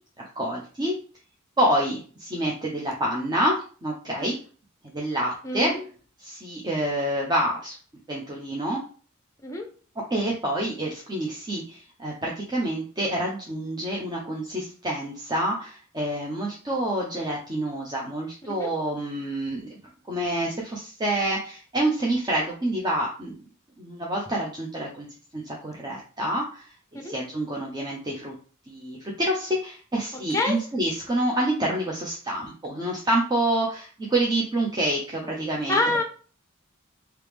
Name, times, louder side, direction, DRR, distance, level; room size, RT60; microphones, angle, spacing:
voice 1, 0.2-0.9 1.6-4.3 4.8-5.7 6.2-7.8 8.1-8.8 10.1-19.7 20.1-23.4 23.8-25.1 25.3-26.7 27.0-28.3 28.7-35.8, right 1 dB, 20° right, -3 dB, 0.6 m, -27 dB
voice 2, 5.4-5.8 9.4-9.6 18.6-18.7 27.0-27.1 30.3-30.6 35.7-36.0, left 2 dB, 15° left, 3 dB, 0.7 m, -25 dB
3.3 x 2.9 x 3.4 m, 0.40 s
head